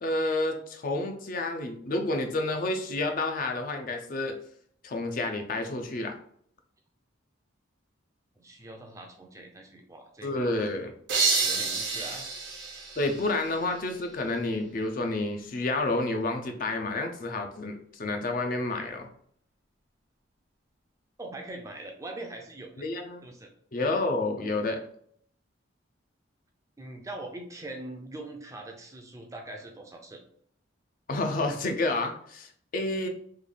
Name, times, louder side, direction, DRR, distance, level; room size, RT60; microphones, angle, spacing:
voice 1, 0.0-4.4 4.8-6.2 10.2-10.9 13.0-19.1 22.8-23.2 23.7-24.8 31.1-33.1, left 2 dB, 45° left, 5 dB, 0.5 m, -29 dB
voice 2, 8.4-10.5 11.4-12.3 21.2-22.7 23.2-23.5 26.8-30.2, right 2 dB, 15° right, 2 dB, 0.4 m, -42 dB
sound 1, 11.1-13.9, right 4 dB, 65° right, 0.9 m, -29 dB
3.3 x 2.3 x 3.8 m, 0.63 s
head